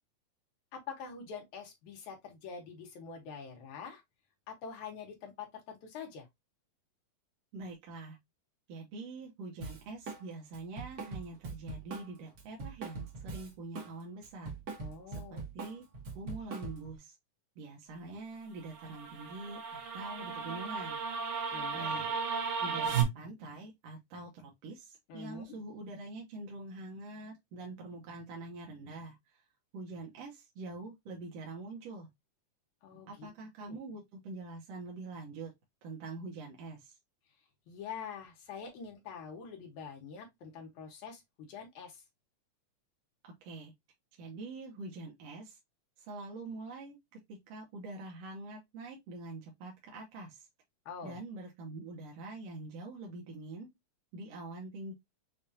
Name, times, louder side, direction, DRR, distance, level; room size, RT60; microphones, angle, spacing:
voice 1, 0.7-4.0 4.5-6.3 14.8-15.4 21.5-22.2 25.1-25.5 32.8-33.3 33.6-33.8 37.7-42.0 50.9-51.2, left 6 dB, 85° left, 2.7 m, -45 dB
voice 2, 7.5-8.2 8.7-14.5 15.1-15.9 16.2-17.2 17.6-21.0 21.7-22.3 22.6-29.4 29.7-32.1 32.9-35.5 35.8-37.0 43.2-43.7 44.2-45.6 46.0-47.0 47.3-50.5 51.0-53.7 54.1-54.9, right 3 dB, 65° right, 1.9 m, -45 dB
Drum kit, 9.6-10.2 10.5-13.9 14.2-17.0, right 4 dB, 50° right, 1.1 m, -42 dB
sound 1, 18.6-23.0, right 6 dB, 85° right, 2.8 m, -34 dB
6.6 x 2.5 x 2.7 m
omnidirectional pair, 3.4 m